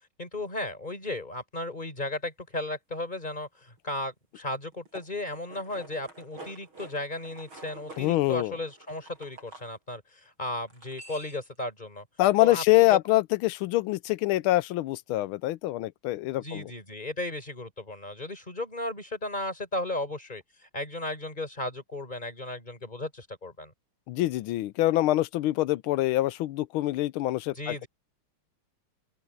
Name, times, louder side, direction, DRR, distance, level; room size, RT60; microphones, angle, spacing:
voice 1, 0.2-12.0 12.4-13.0 16.3-20.4 20.7-23.7 27.5-27.9, left 1 dB, 20° left, 5.0 m, -35 dB
sound 1, 4.7-9.7 10.7-11.6, right 2 dB, 70° right, 7.9 m, -48 dB
voice 2, 8.0-8.5 12.2-16.7 24.1-27.8, left 16 dB, 80° left, 1.4 m, -25 dB
open air
omnidirectional pair, 2.3 m